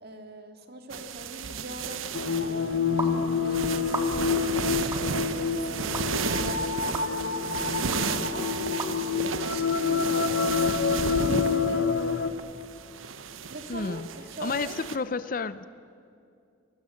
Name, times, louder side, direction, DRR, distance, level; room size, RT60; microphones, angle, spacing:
voice 1, 0.0-2.0 2.4-3.8 4.3-6.7 7.1-8.5 9.0-10.8 11.1-12.2 13.5-14.8, right 1 dB, 50° right, 5 dB, 2.1 m, -42 dB
sound 1, 0.9-15.0, right 5 dB, 80° right, 1.0 m, -34 dB
sound 2, 2.1-12.3, left 5 dB, 65° left, 1.0 m, -27 dB
sound 3, 3.0-3.1 3.8-4.4 4.9-5.1 5.9-6.0 6.9-7.1 7.9-8.0 8.8-8.9, right 2 dB, 15° right, 1.8 m, -33 dB
voice 2, 13.7-14.1 14.4-15.6, left 4 dB, 45° left, 15 dB, 0.6 m, -31 dB
29.0 x 19.5 x 7.7 m, 2.4 s
head